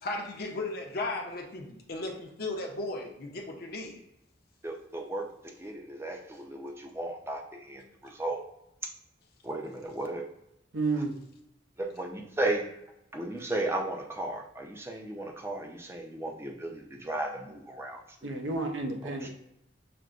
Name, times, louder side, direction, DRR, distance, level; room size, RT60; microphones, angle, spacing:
voice 1, 0.0-4.0, left 2 dB, 55° left, 1 dB, 0.7 m, -36 dB
voice 2, 4.6-8.4 9.4-10.2 11.8-12.7 13.1-18.3 19.0-19.3, right 1 dB, 15° right, 1 dB, 0.5 m, -35 dB
voice 3, 10.7-11.2 18.2-19.3, right 3 dB, 85° right, 3 dB, 0.7 m, -31 dB
5.9 x 2.1 x 2.4 m, 0.84 s
head